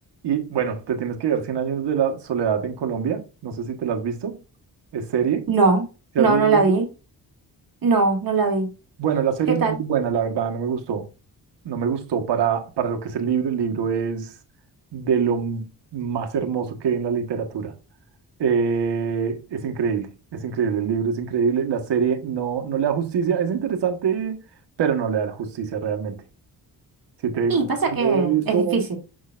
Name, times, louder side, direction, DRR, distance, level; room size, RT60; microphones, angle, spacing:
voice 1, 0.2-4.4 4.9-5.5 6.1-6.8 9.0-11.1 11.6-14.3 14.9-17.7 18.4-24.4 24.8-26.2 27.2-28.8, right 7 dB, 90° right, 1.4 m, -24 dB
voice 2, 5.5-5.8 6.2-6.8 7.8-8.7 9.6-9.8 27.5-27.6 28.0-29.0, right 4 dB, 55° right, 2.2 m, -20 dB
6.9 x 6.4 x 2.5 m
cardioid pair, 80°, 41 cm